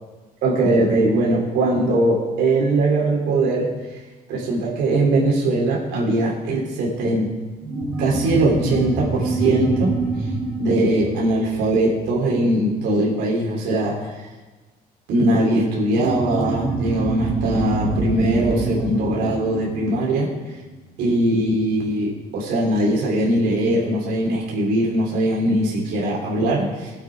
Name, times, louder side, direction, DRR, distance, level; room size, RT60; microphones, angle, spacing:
voice 1, 0.4-3.7 4.3-7.3 8.0-9.9 10.6-14.2 15.1-20.3 21.0-26.9, right 1 dB, 85° right, -3 dB, 3.4 m, -21 dB
sound 1, 7.6-12.6 15.9-20.9, right 3 dB, 10° right, 4.7 m, -26 dB
17.0 x 7.7 x 4.8 m, 1.2 s
cardioid pair, 110°, 17 cm